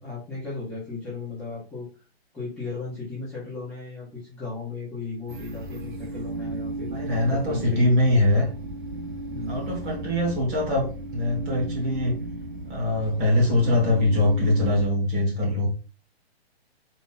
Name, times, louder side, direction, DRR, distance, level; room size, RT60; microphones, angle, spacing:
voice 1, 0.0-1.9 2.3-8.0 9.3-9.7, left 3 dB, ahead, -12 dB, 0.9 m, -36 dB
sound 1, 5.3-14.9, right 2 dB, 50° right, 0.8 m, -35 dB
voice 2, 6.9-8.5 9.5-12.1 12.7-15.7, left 1 dB, 20° right, -2 dB, 1.2 m, -22 dB
4.2 x 2.7 x 3.8 m, 0.36 s
hypercardioid pair, 165°, 31 cm